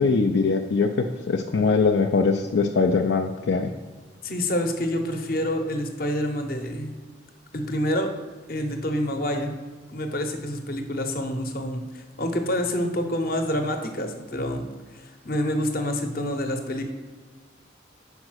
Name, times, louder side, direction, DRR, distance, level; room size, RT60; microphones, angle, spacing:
voice 1, 0.0-3.7, left 4 dB, 75° left, 4 dB, 0.4 m, -22 dB
voice 2, 4.2-6.9 7.5-8.1 8.5-9.6 9.9-14.6 14.9-16.8, left 1 dB, 50° left, 5 dB, 0.8 m, -27 dB
5.3 x 4.8 x 6.2 m, 1.4 s
head